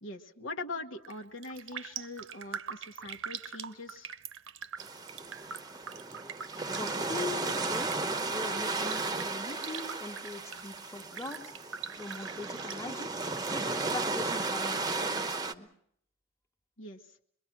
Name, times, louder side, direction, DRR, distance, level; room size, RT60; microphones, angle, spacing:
voice 1, 0.0-4.1 16.8-17.0, left 2 dB, 65° left, 4 dB, 1.4 m, -42 dB
Raindrop, 0.9-1.2 1.4-13.5 13.8-14.8 15.2-15.3, right 7 dB, 70° right, 0.9 m, -43 dB
sound 1, 4.8-15.5, right 3 dB, 20° right, 0.9 m, -34 dB
voice 2, 6.7-8.0 8.3-11.5 12.0-15.7, left 2 dB, 15° left, 3 dB, 1.6 m, -41 dB
24.5 x 22.0 x 6.1 m, 0.70 s
head